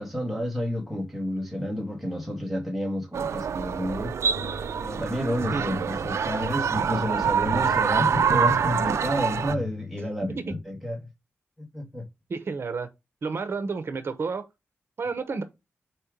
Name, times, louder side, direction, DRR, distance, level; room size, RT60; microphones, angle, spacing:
voice 1, 0.0-4.1 4.7-11.1 11.6-12.1, equal, ahead, 1.6 m, -30 dB
sound 1, 3.1-9.5, right 7 dB, 90° right, 0.4 m, -26 dB
sound 2, 3.8-10.6, left 5 dB, 55° left, 0.6 m, -41 dB
voice 2, 12.3-12.9 13.2-14.5 15.0-15.4, right 4 dB, 60° right, 0.9 m, -30 dB
4.6 x 4.4 x 5.0 m
wide cardioid pair, 135°, 5 cm